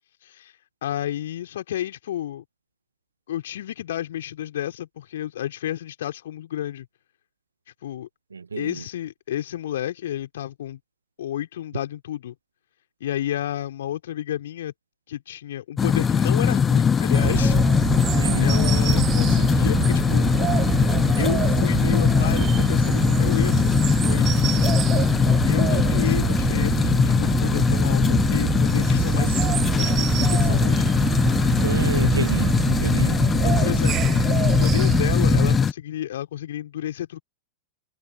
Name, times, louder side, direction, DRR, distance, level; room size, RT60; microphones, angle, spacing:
voice 1, 0.2-2.4 3.3-6.9 7.8-8.1 8.6-10.8 11.2-12.3 13.0-14.7 15.1-17.6 18.4-20.3 21.2-24.7 25.5-30.9 31.6-31.9 33.4-34.1 34.6-37.2, left 12 dB, 60° left, 3.5 m, -31 dB
voice 2, 8.3-8.7 18.2-18.5 31.6-33.2, right 5 dB, 75° right, 1.4 m, -30 dB
sound 1, 15.8-35.7, left 6 dB, 20° left, 0.7 m, -21 dB
sound 2, 17.1-35.6, right 13 dB, 35° right, 5.3 m, -26 dB
figure-of-eight pair, 90°, 0 cm